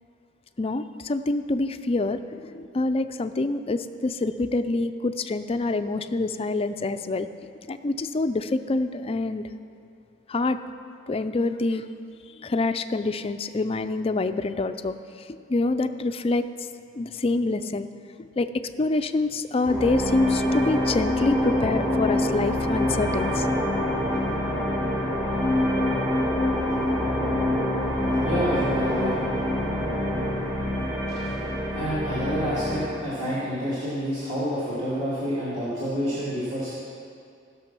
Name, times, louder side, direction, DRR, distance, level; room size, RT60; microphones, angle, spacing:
voice 1, 0.6-7.3 7.7-9.5 10.3-10.6 11.1-11.8 12.4-16.5 17.0-17.9 18.2-23.5, left 2 dB, 30° left, 9 dB, 0.4 m, -26 dB
sound 1, 19.7-33.0, left 1 dB, 20° right, 3.4 m, -25 dB
voice 2, 28.2-29.2 31.7-36.8, equal, 40° right, -11 dB, 2.3 m, -28 dB
15.5 x 6.2 x 6.0 m, 2.4 s
head